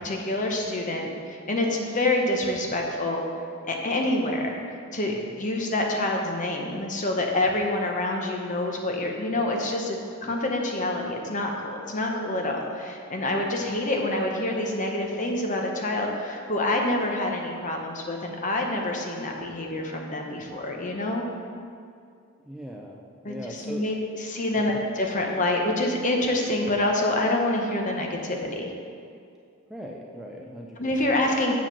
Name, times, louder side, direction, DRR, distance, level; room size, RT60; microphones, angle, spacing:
voice 1, 0.0-3.2 3.7-4.5 4.9-21.2 23.2-28.7 30.8-31.6, left 1 dB, 35° left, 1 dB, 0.9 m, -27 dB
voice 2, 22.5-23.9 24.6-24.7 29.7-31.2, right 1 dB, ahead, -2 dB, 0.4 m, -40 dB
7.3 x 4.8 x 6.0 m, 2.3 s
head